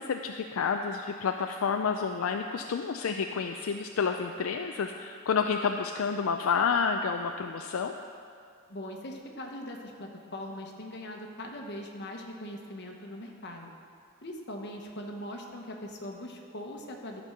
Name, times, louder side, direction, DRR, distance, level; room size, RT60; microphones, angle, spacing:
voice 1, 0.0-7.9, left 6 dB, 75° left, 5 dB, 0.4 m, -29 dB
voice 2, 8.7-13.7 14.2-17.2, left 1 dB, 55° left, 1 dB, 1.2 m, -41 dB
12.0 x 5.3 x 6.7 m, 2.3 s
head